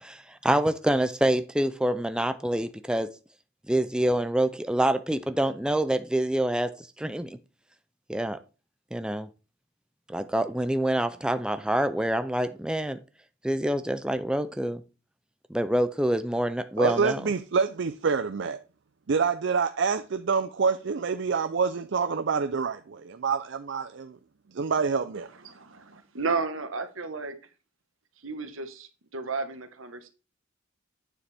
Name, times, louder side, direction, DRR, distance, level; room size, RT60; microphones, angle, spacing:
voice 1, 0.0-3.1 3.7-7.4 8.1-8.4 8.9-9.3 10.1-13.0 13.4-14.8 15.5-17.2, right 1 dB, 5° right, 0.4 m, -26 dB
voice 2, 16.8-18.6 19.1-24.2 24.5-25.3, right 5 dB, 60° right, 0.5 m, -27 dB
voice 3, 25.4-27.3 28.2-30.1, right 4 dB, 80° right, 1.3 m, -33 dB
9.2 x 7.0 x 3.4 m
head